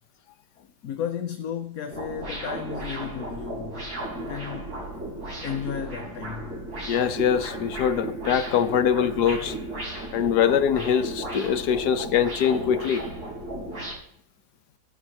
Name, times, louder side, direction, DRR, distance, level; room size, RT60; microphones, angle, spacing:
voice 1, 0.8-3.9 4.2-4.8 5.4-6.6, left 8 dB, 65° left, 1.2 m, -33 dB
sound 1, 1.9-13.9, right 1 dB, 70° right, 4.8 m, -35 dB
voice 2, 6.9-9.6 10.1-13.1, left 8 dB, 90° left, 1.5 m, -23 dB
15.5 x 12.5 x 2.9 m
omnidirectional pair, 1.7 m